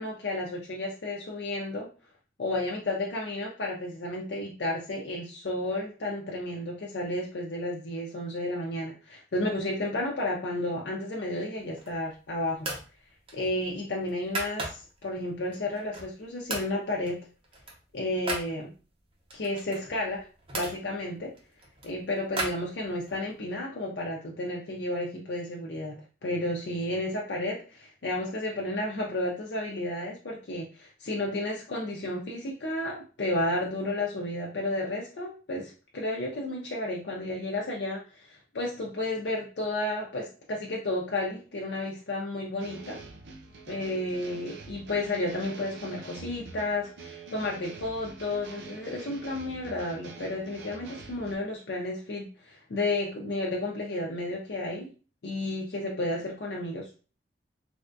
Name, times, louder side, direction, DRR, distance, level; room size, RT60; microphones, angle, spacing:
voice 1, 0.0-1.9 2.4-12.7 13.3-17.2 17.9-18.7 19.3-20.3 20.5-21.3 21.8-43.0 43.7-54.9 55.2-56.9, left 1 dB, 70° left, -2 dB, 0.5 m, -32 dB
sound 1, 11.6-12.1 12.6-12.9 13.3-15.1 15.5-16.2 16.5-16.7 17.0-18.5 19.3-20.8 21.3-23.2, right 2 dB, 35° right, 0.7 m, -37 dB
sound 2, 42.6-51.3, right 4 dB, 80° right, 0.5 m, -45 dB
3.4 x 2.2 x 2.6 m, 0.36 s
head